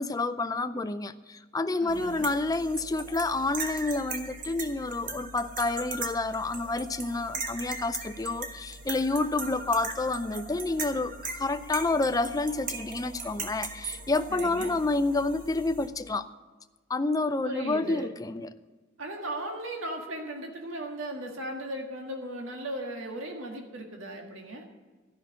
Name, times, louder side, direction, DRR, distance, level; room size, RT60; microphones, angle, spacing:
voice 1, 0.0-16.3 16.9-18.5, left 3 dB, 20° left, 11 dB, 0.5 m, -29 dB
voice 2, 1.8-2.3 14.3-14.8 17.4-18.1 19.0-24.6, right 1 dB, 80° right, 2 dB, 1.8 m, -37 dB
sound 1, 1.9-15.9, right 3 dB, 45° right, 1.4 m, -39 dB
13.5 x 5.9 x 9.7 m, 1.3 s
head